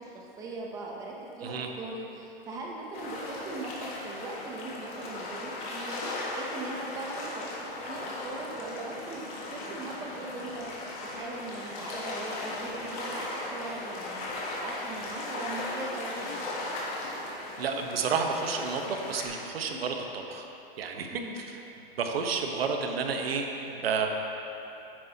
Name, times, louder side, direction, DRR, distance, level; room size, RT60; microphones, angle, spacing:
voice 1, 0.0-16.4 21.1-21.4, right 2 dB, 10° right, -2 dB, 0.7 m, -40 dB
sound 1, 2.9-19.2, left 2 dB, 40° left, 1.7 m, -37 dB
sound 2, 9.5-9.6 9.7-9.8 10.4-10.5 11.0-11.3 12.7-12.8 13.6-14.0 15.0-15.1 15.8-15.9 16.2-16.5 17.6-17.9 19.7-20.0, left 7 dB, 55° left, 0.9 m, -49 dB
voice 2, 17.6-20.5 20.8-21.2 22.0-24.1, right 5 dB, 85° right, 3 dB, 1.1 m, -30 dB
9.7 x 9.4 x 2.8 m, 2.9 s
hypercardioid pair, 155°, 29 cm